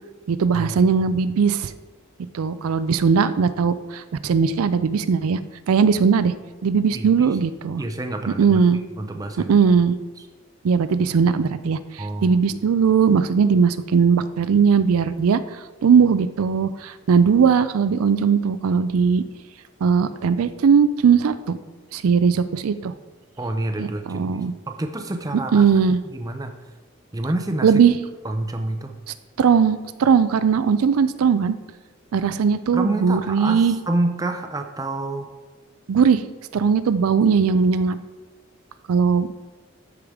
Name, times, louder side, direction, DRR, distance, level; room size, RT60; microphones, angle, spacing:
voice 1, 0.3-1.7 2.3-5.4 5.7-6.3 6.6-7.8 8.4-8.8 9.5-10.0 10.6-15.4 15.8-19.2 19.8-21.6 21.9-22.9 23.8-24.5 25.5-26.0 27.6-28.0 29.4-31.6 32.1-33.8 35.9-36.2 36.5-38.0 38.9-39.4, right 6 dB, 80° right, 13 dB, 0.4 m, -19 dB
voice 2, 6.9-7.3 7.8-8.6 9.0-9.5 12.0-12.4 23.4-24.4 24.7-25.7 26.1-26.5 27.1-27.7 28.2-28.9 32.7-35.3, right 2 dB, 15° right, 5 dB, 0.5 m, -27 dB
12.5 x 4.9 x 3.6 m, 1.3 s
head